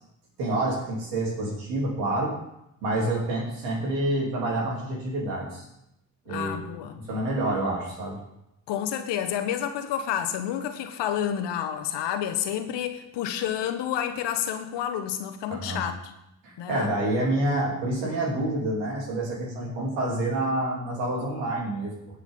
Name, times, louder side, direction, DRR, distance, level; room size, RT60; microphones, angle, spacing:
voice 1, 0.4-2.4 2.8-5.6 6.3-6.6 7.0-8.2 15.5-15.8 16.4-21.9, right 1 dB, 85° right, -2 dB, 3.0 m, -28 dB
voice 2, 6.3-7.0 8.7-15.9 16.6-16.9, left 9 dB, 75° left, 8 dB, 1.2 m, -29 dB
18.0 x 6.4 x 3.6 m, 0.84 s
hypercardioid pair, 50°, 43 cm